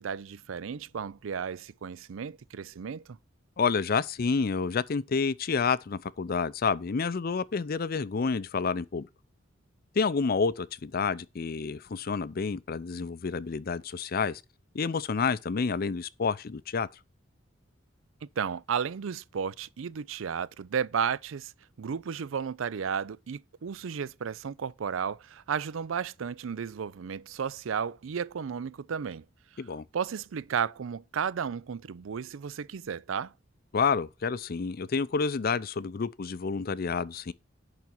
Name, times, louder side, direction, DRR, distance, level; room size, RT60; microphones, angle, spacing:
voice 1, 0.0-3.2 18.2-21.5 21.8-29.2 29.9-33.3, right 7 dB, 90° right, 0.4 m, -33 dB
voice 2, 3.6-9.1 10.0-14.4 14.7-16.9 29.6-29.8 33.7-37.3, left 5 dB, 50° left, 0.5 m, -29 dB
10.5 x 4.1 x 5.9 m
head